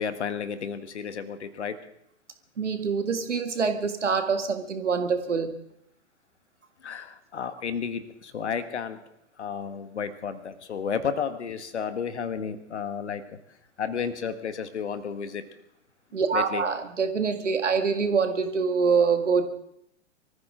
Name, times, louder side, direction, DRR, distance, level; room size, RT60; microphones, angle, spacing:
voice 1, 0.0-1.7 6.8-9.0 9.4-13.2 13.8-15.4 16.3-16.6, left 7 dB, 65° left, 10 dB, 1.7 m, -32 dB
voice 2, 2.6-5.6 16.1-19.5, right 5 dB, 75° right, 7 dB, 2.0 m, -25 dB
24.0 x 14.5 x 3.8 m, 0.73 s
figure-of-eight pair, 105°, 36 cm